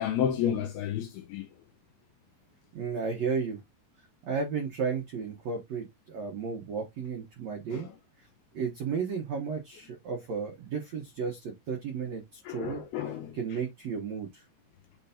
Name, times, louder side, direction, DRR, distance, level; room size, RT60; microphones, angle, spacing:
voice 1, 0.0-1.5 7.7-7.8 12.5-13.3, left 9 dB, 85° left, 2.3 m, -31 dB
voice 2, 2.7-3.6 4.2-7.9 8.2-8.3 8.5-14.4, right 5 dB, 90° right, 1.5 m, -34 dB
10.0 x 3.4 x 2.8 m
omnidirectional pair, 5.2 m